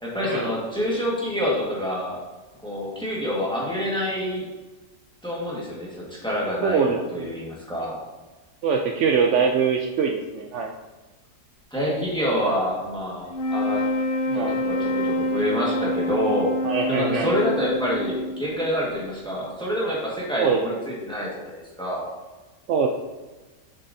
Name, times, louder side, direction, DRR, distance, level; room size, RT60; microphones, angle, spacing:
voice 1, 0.0-2.2 2.6-4.5 5.2-8.0 11.7-13.9 14.3-16.5 16.9-21.5 21.8-22.0, equal, 5° left, -4 dB, 1.3 m, -27 dB
voice 2, 6.6-7.3 8.6-10.7 14.3-14.6 16.6-17.3 20.3-20.8 22.7-22.9, right 6 dB, 80° right, 3 dB, 0.6 m, -23 dB
sound 1, 13.3-18.7, left 1 dB, 75° left, 0.4 m, -26 dB
7.4 x 6.3 x 2.7 m, 1.2 s
omnidirectional pair, 1.8 m